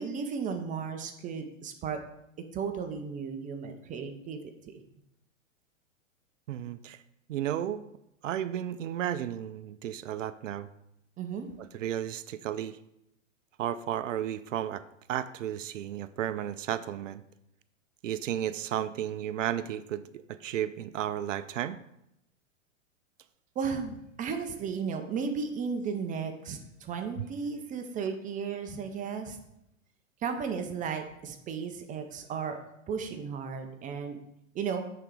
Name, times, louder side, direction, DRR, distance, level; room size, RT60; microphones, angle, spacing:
voice 1, 0.0-2.0 2.5-4.4 4.7-4.8 11.2-11.5 23.6-29.4 30.2-32.6 32.9-34.2 34.5-34.8, right 6 dB, 20° right, 6 dB, 0.7 m, -34 dB
voice 2, 6.5-7.0 7.3-7.8 8.2-10.7 11.6-12.8 13.6-14.8 15.1-17.2 18.0-21.8, right 11 dB, 70° right, 13 dB, 0.5 m, -33 dB
8.7 x 4.0 x 4.8 m, 0.81 s
hypercardioid pair, 115°, 40 cm